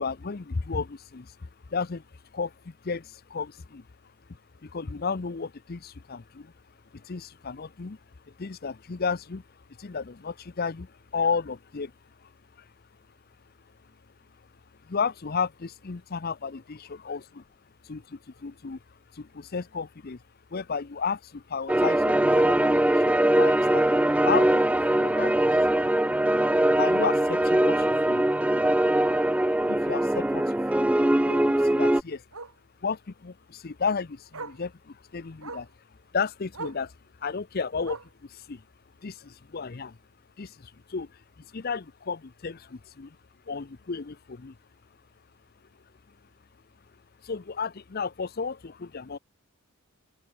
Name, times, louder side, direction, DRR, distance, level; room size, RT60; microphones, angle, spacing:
voice 1, 0.0-3.9 4.3-6.5 6.9-8.0 8.3-11.9 12.2-12.3 12.6-12.7 14.8-17.4 17.8-20.2 20.5-24.0 24.2-25.8 26.8-28.7 29.7-31.0 31.2-32.2 32.8-35.7 36.1-38.6 39.0-40.0 40.4-43.2 43.5-44.6 47.2-49.2, left 5 dB, 45° left, 0.6 m, -33 dB
sound 1, 21.7-32.0, right 1 dB, 5° right, 0.3 m, -22 dB
Bark, 24.8-25.0 25.4-25.5 25.9-26.0 26.2-26.3 27.7-27.8 30.3-30.4 31.3-31.5 32.3-32.6 33.8-33.9 34.3-34.7 35.4-35.7 36.5-36.9 37.8-38.2 39.2-39.3, right 3 dB, 80° right, 3.2 m, -41 dB
open air
head